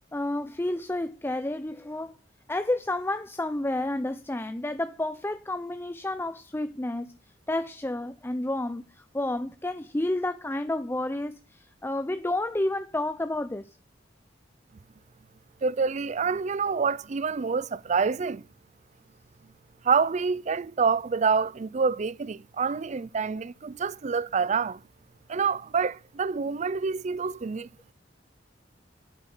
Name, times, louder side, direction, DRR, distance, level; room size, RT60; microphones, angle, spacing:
voice 1, 0.1-2.1 2.5-7.1 7.5-13.7, left 1 dB, 15° left, 0.6 m, -30 dB
voice 2, 15.6-18.4 19.8-24.8 25.3-27.7, right 5 dB, 40° right, 0.4 m, -27 dB
10.0 x 8.1 x 5.5 m
head